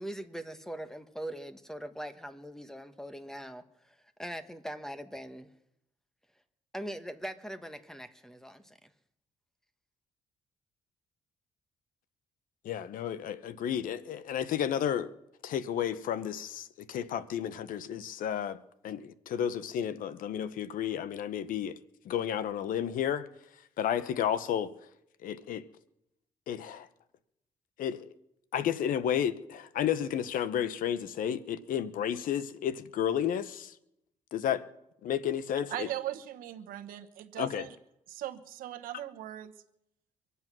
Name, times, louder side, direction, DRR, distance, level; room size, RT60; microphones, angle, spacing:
voice 1, 0.0-5.5 6.7-8.9, equal, 5° left, 1.2 m, -41 dB
voice 2, 12.6-15.1 15.4-18.6 18.8-21.8 22.0-23.3 23.8-24.7 25.2-25.6 26.5-26.9 27.8-28.1 28.5-33.7 34.3-34.6 35.0-35.9 37.4-37.7, left 9 dB, 75° left, 0.9 m, -32 dB
voice 3, 35.7-37.8 38.1-39.5, right 13 dB, 85° right, 1.1 m, -39 dB
24.5 x 8.3 x 6.1 m
cardioid pair, 90°, 14 cm